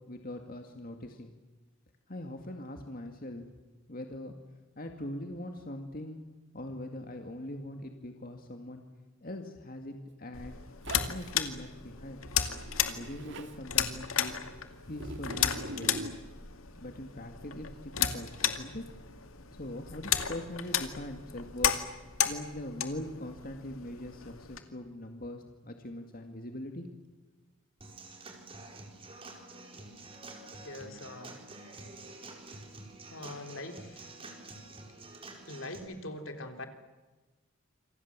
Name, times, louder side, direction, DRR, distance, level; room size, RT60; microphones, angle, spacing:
voice 1, 0.1-1.3 2.1-3.4 3.9-4.3 4.8-6.2 6.5-8.8 9.2-10.6 11.1-12.2 12.9-14.4 14.9-16.1 16.8-18.8 19.6-21.7 22.2-26.9, left 1 dB, 45° left, 4 dB, 2.2 m, -41 dB
sound 1, 10.3-24.6, left 9 dB, 90° left, 2.3 m, -34 dB
Zipper (clothing), 10.8-11.3 12.5-13.5 15.0-16.2, right 1 dB, 60° right, 2.3 m, -42 dB
Human voice / Acoustic guitar / Drum, 27.8-35.8, right 2 dB, 25° right, 4.5 m, -48 dB
voice 2, 30.6-31.4 33.1-34.1 35.5-36.7, left 2 dB, 70° left, 6 dB, 3.5 m, -42 dB
28.0 x 25.5 x 7.5 m, 1.2 s
head